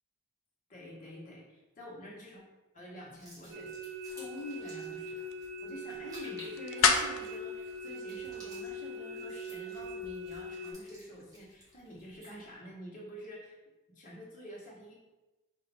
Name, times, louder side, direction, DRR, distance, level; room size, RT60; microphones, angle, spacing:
voice 1, 0.7-2.4 2.7-3.7 4.1-13.6 13.9-14.9, equal, 35° left, -5 dB, 1.3 m, -47 dB
sound 1, 3.1-12.5, equal, 15° right, 1.1 m, -55 dB
sound 2, 3.5-10.7, equal, 70° right, 0.6 m, -42 dB
sound 3, 3.9-9.0, left 6 dB, 65° left, 0.4 m, -34 dB
4.9 x 2.9 x 3.4 m, 1.1 s
head